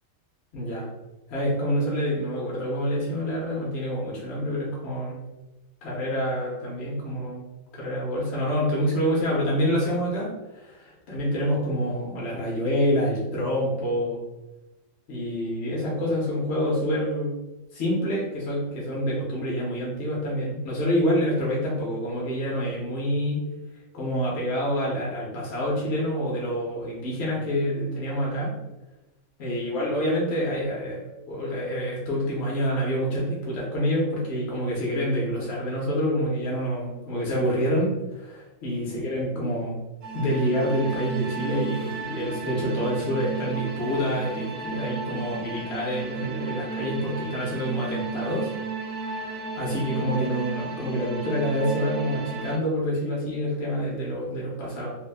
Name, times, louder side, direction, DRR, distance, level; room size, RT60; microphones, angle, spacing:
voice 1, 0.5-0.9 1.3-5.2 5.8-7.5 7.7-14.2 15.1-17.4 17.7-23.4 23.9-28.5 29.4-31.0 31.3-39.8 40.1-48.5 49.2-49.3 49.6-55.0, equal, 60° left, -5 dB, 0.9 m, -27 dB
sound 1, 40.0-52.6, right 4 dB, 65° right, 0.7 m, -34 dB
3.4 x 2.1 x 2.3 m, 1.0 s
omnidirectional pair, 1.4 m